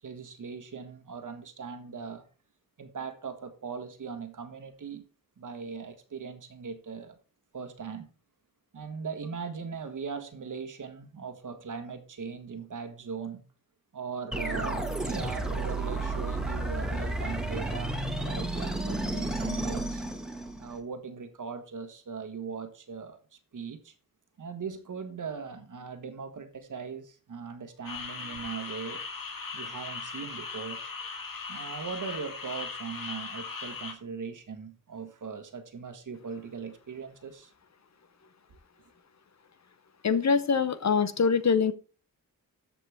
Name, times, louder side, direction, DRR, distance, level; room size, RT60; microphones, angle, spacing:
voice 1, 0.0-2.2 2.8-5.1 5.4-7.2 7.5-8.1 8.7-13.4 13.9-20.0 20.6-23.9 24.4-29.0 29.5-30.8 31.5-37.5, right 5 dB, 60° right, 1.6 m, -39 dB
sound 1, 14.3-20.8, right 2 dB, ahead, 1.8 m, -32 dB
sound 2, 27.8-33.9, left 4 dB, 70° left, 2.2 m, -39 dB
voice 2, 40.0-41.7, left 5 dB, 50° left, 0.9 m, -24 dB
13.5 x 5.2 x 3.5 m
cardioid pair, 65°, 35 cm